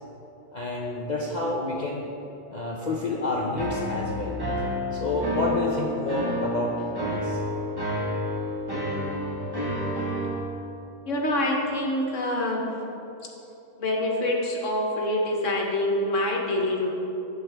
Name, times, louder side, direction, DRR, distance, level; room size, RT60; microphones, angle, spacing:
voice 1, 0.5-2.1 2.5-4.4 4.9-7.4, left 2 dB, 85° left, -2 dB, 0.4 m, -29 dB
sound 1, 3.6-10.4, equal, 15° right, 1.1 m, -30 dB
voice 2, 11.1-12.7 13.8-16.9, left 1 dB, 50° left, -1 dB, 1.4 m, -26 dB
12.0 x 7.5 x 3.4 m, 3.0 s
omnidirectional pair, 1.7 m